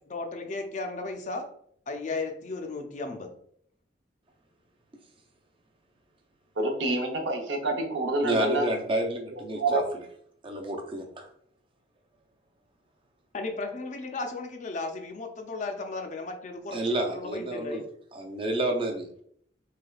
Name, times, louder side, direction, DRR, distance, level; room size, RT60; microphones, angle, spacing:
voice 1, 0.1-1.5 1.9-3.3 13.3-17.8, left 3 dB, 40° left, 5 dB, 0.5 m, -35 dB
voice 2, 6.6-8.7 9.3-9.8, right 2 dB, 70° right, 2 dB, 0.7 m, -27 dB
voice 3, 8.2-9.8 10.4-11.3 16.7-17.8 18.1-19.1, right 1 dB, 30° right, 2 dB, 0.5 m, -30 dB
3.3 x 3.2 x 2.3 m, 0.66 s
head